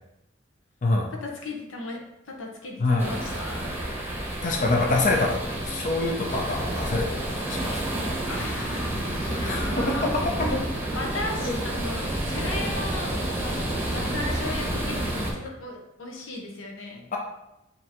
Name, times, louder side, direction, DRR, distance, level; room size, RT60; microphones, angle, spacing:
voice 1, 1.2-2.0 2.3-3.7 8.2-10.1 10.9-17.0, left 2 dB, 85° left, 1 dB, 0.8 m, -36 dB
voice 2, 2.8-3.2 4.4-7.6 9.4-10.1 10.5-10.7 11.5-11.6 17.1-17.2, left 2 dB, 40° left, 0 dB, 0.5 m, -25 dB
sound 1, 3.0-15.3, right 1 dB, 10° right, 0.8 m, -29 dB
5.2 x 2.8 x 2.9 m, 0.90 s
head